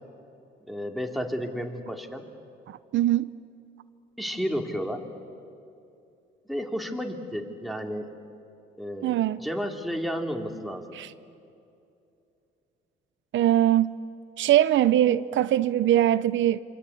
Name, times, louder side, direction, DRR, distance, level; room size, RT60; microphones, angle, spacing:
voice 1, 0.7-2.2 4.2-5.1 6.4-8.1 8.8-11.0, equal, ahead, 3.0 m, -32 dB
voice 2, 2.7-3.3 9.0-9.4 10.9-11.1 13.3-14.0 14.4-16.6, right 12 dB, 70° right, 0.6 m, -22 dB
28.0 x 24.5 x 8.5 m
cardioid pair, 90°, 20 cm